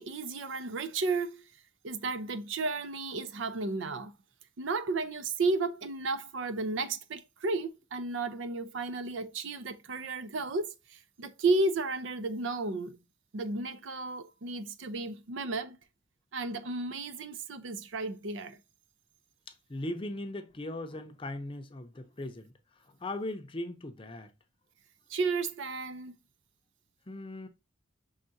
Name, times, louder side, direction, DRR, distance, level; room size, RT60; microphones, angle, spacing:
voice 1, 0.0-1.4 1.8-4.1 4.6-13.0 13.3-15.8 16.3-18.6 25.1-26.1, right 3 dB, 75° right, 0.5 m, -33 dB
voice 2, 19.7-22.5 22.9-24.3 27.1-27.5, left 1 dB, 25° left, 0.6 m, -38 dB
5.6 x 3.6 x 2.6 m
head